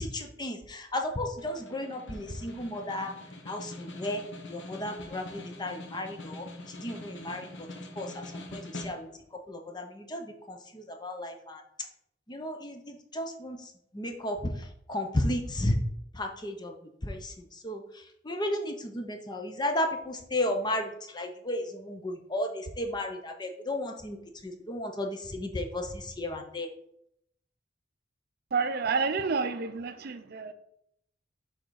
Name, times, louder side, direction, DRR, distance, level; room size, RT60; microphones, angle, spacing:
voice 1, 0.0-3.1 3.5-4.2 4.5-7.7 8.0-11.6 12.3-13.6 13.9-14.4 14.9-15.8 16.1-16.7 17.0-17.3 17.6-17.8 18.2-24.2 24.4-26.7, left 1 dB, 20° left, 0.7 m, -34 dB
Snare drum, 1.4-9.3, left 1 dB, 70° left, 1.0 m, -44 dB
voice 2, 28.5-30.5, right 4 dB, 55° right, 0.5 m, -29 dB
6.4 x 3.8 x 4.7 m
head